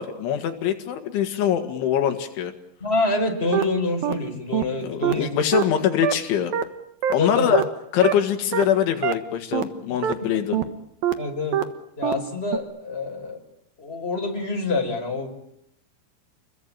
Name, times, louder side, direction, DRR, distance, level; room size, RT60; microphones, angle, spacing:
voice 1, 0.0-2.5 4.8-6.5 7.1-7.6 7.9-10.6, left 9 dB, 80° left, 6 dB, 4.2 m, -23 dB
voice 2, 2.8-5.3 7.2-7.5 9.9-10.0 11.2-11.6 12.0-13.4 13.8-15.3, left 3 dB, 10° left, 3 dB, 5.3 m, -26 dB
sound 1, 3.5-3.6 4.0-4.1 4.5-4.6 5.0-5.1 5.5-5.6 6.0-6.1 6.5-6.6 7.0-7.1 7.5-7.6 8.0-8.1 8.5-8.6 9.0-9.1 9.5-9.6 10.0-10.1 10.5-10.6 11.0-11.1 11.5-11.6 12.0-12.1 12.5-12.6, right 11 dB, 65° right, 2.7 m, -22 dB
29.5 x 22.5 x 8.9 m, 0.80 s
omnidirectional pair, 5.3 m